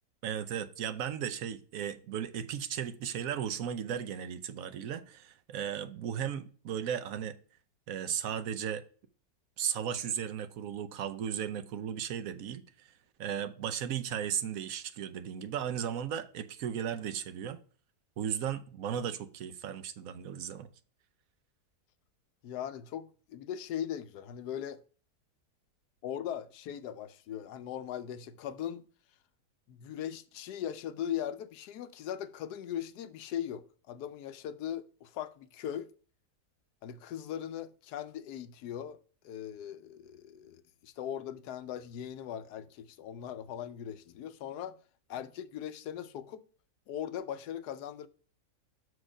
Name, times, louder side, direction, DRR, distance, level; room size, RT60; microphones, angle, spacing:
voice 1, 0.2-7.4 7.9-8.8 9.6-12.6 13.2-17.6 18.2-20.7, right 9 dB, 65° right, 1.0 m, -35 dB
voice 2, 22.4-24.8 26.0-28.8 29.7-35.9 36.8-39.0 39.2-44.8 45.1-46.4 46.9-48.1, left 10 dB, 80° left, 1.2 m, -39 dB
6.4 x 4.7 x 4.9 m
omnidirectional pair, 1.7 m